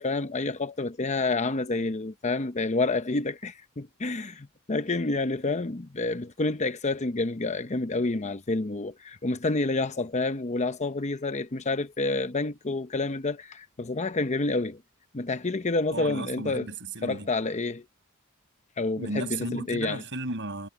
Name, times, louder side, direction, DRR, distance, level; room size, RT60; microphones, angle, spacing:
voice 1, 0.0-14.8 15.1-16.7 17.0-17.8 18.8-20.0, left 3 dB, 30° left, 0.8 m, -29 dB
voice 2, 15.9-17.3 19.0-20.7, right 2 dB, 55° right, 6.5 m, -34 dB
head